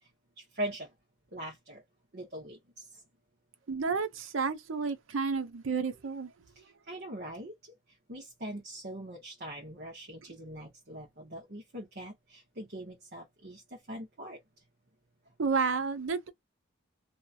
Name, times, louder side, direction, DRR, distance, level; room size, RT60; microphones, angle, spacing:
voice 1, 0.4-0.9 1.3-1.8 2.1-3.0 6.5-7.7 8.1-14.4, right 1 dB, 50° right, 1.1 m, -42 dB
voice 2, 3.7-6.3 15.4-16.3, right 5 dB, 75° right, 0.6 m, -31 dB
2.8 x 2.3 x 2.5 m
head